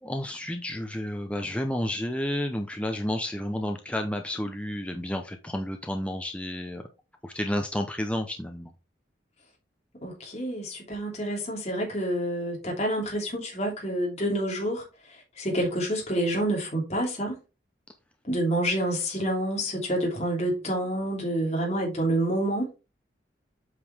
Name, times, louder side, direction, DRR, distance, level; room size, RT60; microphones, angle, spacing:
voice 1, 0.0-6.8 7.2-8.7, left 1 dB, 5° left, 0.7 m, -31 dB
voice 2, 10.0-17.4 18.2-22.7, right 1 dB, 35° left, 3.0 m, -28 dB
8.1 x 5.3 x 3.5 m
head